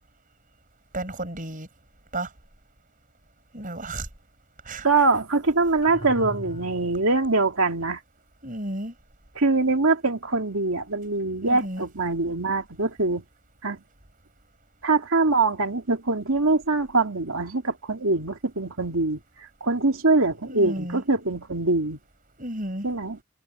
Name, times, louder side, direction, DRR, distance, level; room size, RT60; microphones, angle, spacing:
voice 1, 0.9-1.7 2.1-2.3 3.5-4.1 4.7-4.9 8.4-8.9 11.4-11.8 20.5-21.0 22.4-22.9, right 1 dB, 35° right, 5.9 m, -32 dB
voice 2, 4.8-8.0 9.3-13.2 13.6-13.8 14.8-22.0 22.8-23.2, right 3 dB, 70° right, 2.5 m, -23 dB
sound 1, 5.8-7.3, equal, 25° left, 6.3 m, -38 dB
head